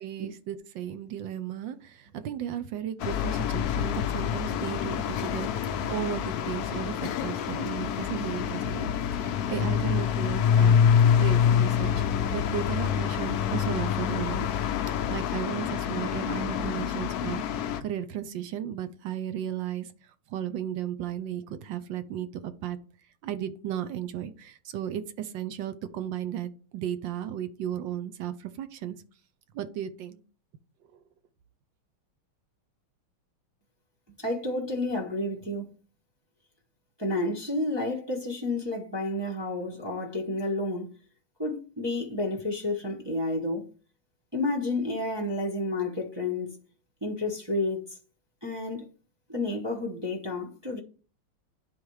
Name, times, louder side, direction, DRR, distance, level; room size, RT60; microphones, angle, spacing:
voice 1, 0.0-10.8 11.2-12.0 12.3-14.5 15.1-19.9 20.3-22.8 23.2-29.0 29.5-30.2, right 10 dB, 70° right, 1.2 m, -35 dB
sound 1, 3.0-17.8, left 8 dB, 85° left, 0.8 m, -26 dB
voice 2, 34.2-35.7 37.0-40.9 41.4-43.6 44.3-46.5 47.0-48.0 48.4-48.8 49.3-50.8, left 2 dB, 25° right, 0.5 m, -30 dB
11.0 x 4.0 x 3.2 m
omnidirectional pair, 2.4 m